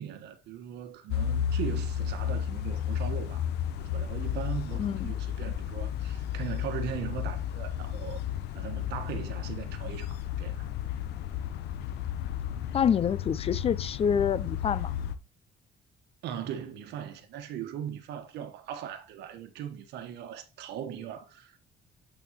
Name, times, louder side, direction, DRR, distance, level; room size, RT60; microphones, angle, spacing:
voice 1, 0.0-3.5 3.8-8.2 8.5-10.7 16.2-21.6, right 9 dB, 80° right, 1.4 m, -39 dB
sound 1, 1.1-15.1, left 9 dB, 80° left, 0.9 m, -33 dB
voice 2, 4.8-5.1 12.7-14.9, left 8 dB, 35° left, 0.4 m, -27 dB
8.7 x 4.5 x 3.0 m
cardioid pair, 110°, 17 cm